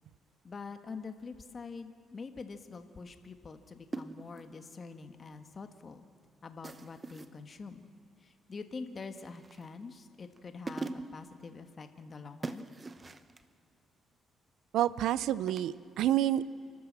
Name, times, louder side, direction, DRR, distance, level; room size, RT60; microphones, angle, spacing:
voice 1, 0.4-6.1 6.4-7.9 8.2-12.7, left 4 dB, 40° left, 8 dB, 1.5 m, -45 dB
sound 1, 3.9-4.5 6.6-7.4 9.2-9.8 10.4-10.5 10.7-11.3 12.4-13.4 15.5-15.7, right 3 dB, 30° right, 0.9 m, -42 dB
voice 2, 14.7-16.5, right 12 dB, 85° right, 18 dB, 0.6 m, -29 dB
28.5 x 12.5 x 7.5 m, 2.4 s
cardioid pair, 90°, 0 cm